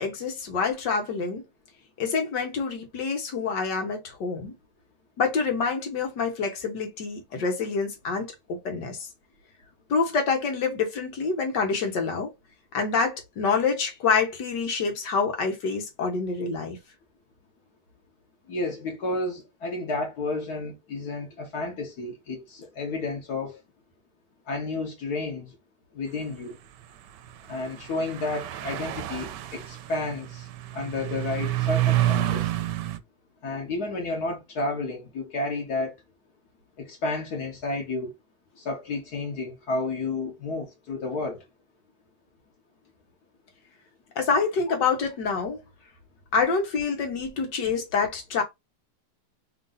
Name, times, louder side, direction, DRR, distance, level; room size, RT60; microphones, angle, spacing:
voice 1, 0.0-1.4 2.0-4.5 5.2-9.1 9.9-12.3 12.7-16.8 44.1-45.6 46.3-48.4, left 5 dB, 85° left, 1.8 m, -27 dB
voice 2, 18.5-23.6 24.5-25.5 25.9-26.6 27.5-30.5 30.7-32.5 33.4-35.9 36.8-38.1 38.6-41.4, left 2 dB, 65° left, 1.6 m, -31 dB
sound 1, 27.3-27.4 27.9-33.0, right 14 dB, 80° right, 1.2 m, -28 dB
3.8 x 2.6 x 3.8 m
omnidirectional pair, 1.8 m